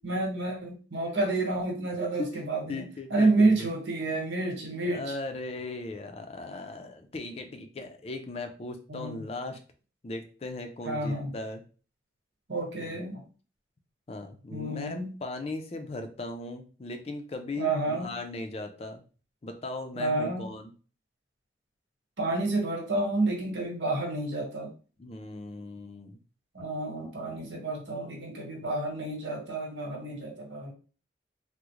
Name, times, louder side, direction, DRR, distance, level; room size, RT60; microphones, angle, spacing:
voice 1, 0.0-2.8 3.1-5.1 8.9-9.3 10.8-11.3 12.5-13.2 14.5-15.1 17.6-18.1 20.0-20.5 22.2-24.7 26.5-30.7, right 2 dB, 85° right, 0 dB, 1.1 m, -29 dB
voice 2, 2.0-3.7 4.8-9.6 10.0-11.6 12.8-13.0 14.1-19.0 19.4-20.7 25.0-26.2, left 2 dB, 35° left, 6 dB, 0.4 m, -38 dB
3.6 x 2.1 x 3.0 m, 0.38 s
head